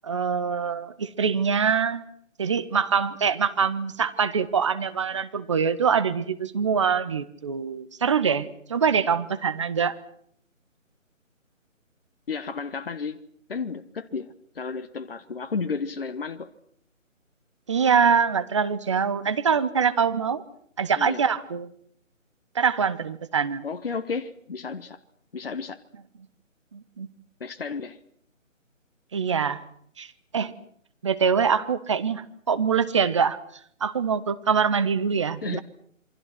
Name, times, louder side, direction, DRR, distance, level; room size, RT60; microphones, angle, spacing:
voice 1, 0.0-2.0 2.4-10.0 17.7-20.4 20.8-21.7 22.5-23.6 26.7-27.1 29.1-29.6 30.0-30.5 31.0-33.4 33.8-35.6, right 6 dB, 25° right, 12 dB, 1.0 m, -24 dB
voice 2, 12.3-13.2 13.5-16.5 21.0-21.2 23.6-25.0 25.3-25.8 27.4-28.0 35.4-35.6, left 5 dB, 45° left, 10 dB, 1.5 m, -32 dB
28.0 x 24.5 x 6.0 m, 0.65 s
figure-of-eight pair, 155°, 40 cm